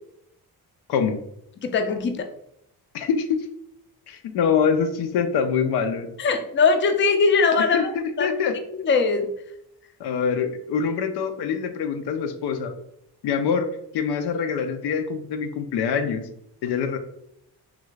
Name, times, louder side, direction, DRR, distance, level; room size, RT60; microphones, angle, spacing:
voice 1, 0.9-1.2 2.9-3.4 4.1-6.1 7.7-8.5 10.0-12.7 13.2-16.3 16.6-17.0, left 6 dB, 90° left, 7 dB, 0.5 m, -24 dB
voice 2, 1.6-2.3 6.2-7.9 8.2-8.3 8.8-9.3, left 4 dB, 30° left, 6 dB, 0.4 m, -20 dB
3.2 x 2.4 x 3.1 m, 0.76 s
cardioid pair, 85°, 38 cm